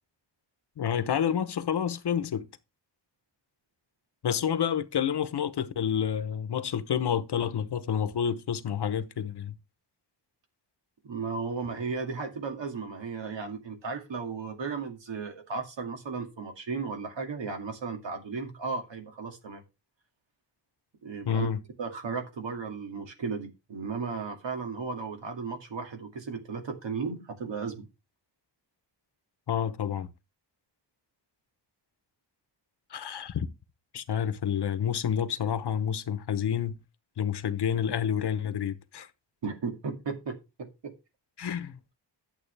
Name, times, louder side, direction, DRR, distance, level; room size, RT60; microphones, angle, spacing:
voice 1, 0.8-2.5 4.2-9.5 21.3-21.6 29.5-30.1 32.9-33.4 33.9-36.8 37.2-39.1 41.4-41.8, left 8 dB, 65° left, 1.0 m, -29 dB
voice 2, 11.0-19.6 21.0-21.5 21.8-27.9 39.4-40.9, right 5 dB, 90° right, 2.2 m, -35 dB
11.5 x 7.7 x 3.3 m
wide cardioid pair, 175°, 43 cm